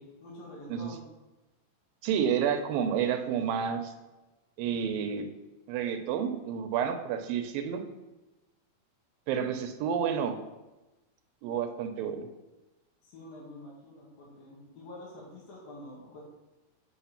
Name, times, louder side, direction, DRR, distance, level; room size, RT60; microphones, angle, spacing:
voice 1, 0.2-1.0 3.2-3.4 13.0-16.2, left 1 dB, 80° left, -4 dB, 3.8 m, -47 dB
voice 2, 2.0-3.9 4.6-5.3 5.7-7.8 9.3-10.4 11.4-12.3, right 8 dB, 80° right, 7 dB, 2.4 m, -30 dB
8.3 x 5.2 x 5.8 m, 1.1 s
omnidirectional pair, 4.1 m